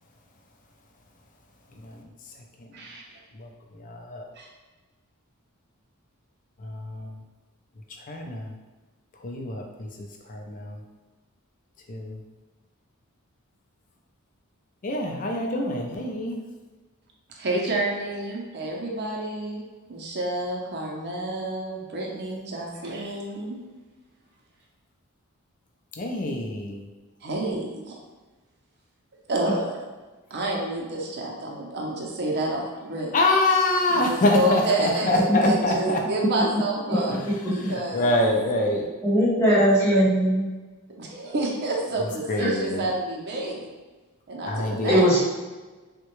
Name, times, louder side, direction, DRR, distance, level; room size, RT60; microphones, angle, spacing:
voice 1, 3.8-4.2 6.6-7.1 8.1-8.5 9.2-10.8 11.9-12.2 14.8-16.4 26.0-26.8 33.1-36.0 36.9-37.2 37.5-38.9 42.3-42.8 44.5-45.0, left 1 dB, 35° left, 0.4 m, -25 dB
voice 2, 17.3-23.6 27.2-28.0 29.3-29.9 30.3-33.1 33.9-38.2 39.5-39.6 40.9-43.7 44.3-45.1, right 2 dB, 50° right, 0.6 m, -29 dB
voice 3, 39.0-40.4 42.4-42.5 44.9-45.2, equal, 10° left, 0.8 m, -19 dB
3.6 x 2.2 x 3.0 m
head